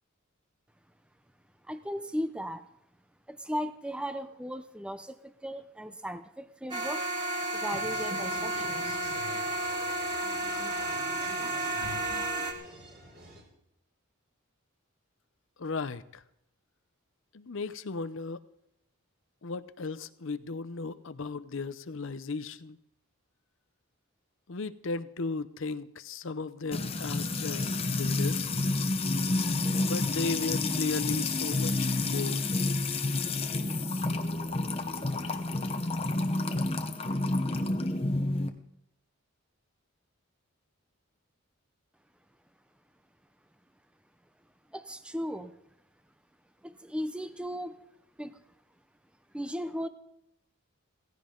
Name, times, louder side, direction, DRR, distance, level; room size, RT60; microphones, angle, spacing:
voice 1, 1.7-2.7 3.3-7.0 7.5-9.0 44.7-45.5 46.6-47.8 48.2-48.4 49.3-49.9, equal, 5° right, 11 dB, 0.6 m, -36 dB
sound 1, 6.7-12.5, right 2 dB, 20° right, 1.9 m, -32 dB
sound 2, 7.8-13.4, left 1 dB, 45° right, 3.9 m, -48 dB
voice 2, 15.6-16.2 17.3-18.4 19.4-22.8 24.5-28.5 29.8-32.5, left 3 dB, 60° left, 15 dB, 0.6 m, -35 dB
Music / Water tap faucet / Trickle dribble, 26.7-38.5, left 2 dB, 25° left, 0.9 m, -29 dB
16.5 x 15.5 x 3.8 m, 0.79 s
head